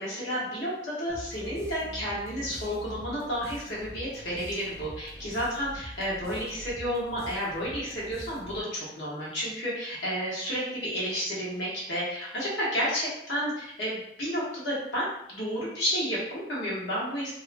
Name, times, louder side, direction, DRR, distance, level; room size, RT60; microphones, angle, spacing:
voice 1, 0.0-17.3, equal, 85° left, -7 dB, 1.1 m, -31 dB
sound 1, 1.1-8.8, equal, 15° right, 0.3 m, -44 dB
2.7 x 2.2 x 2.5 m, 0.77 s
head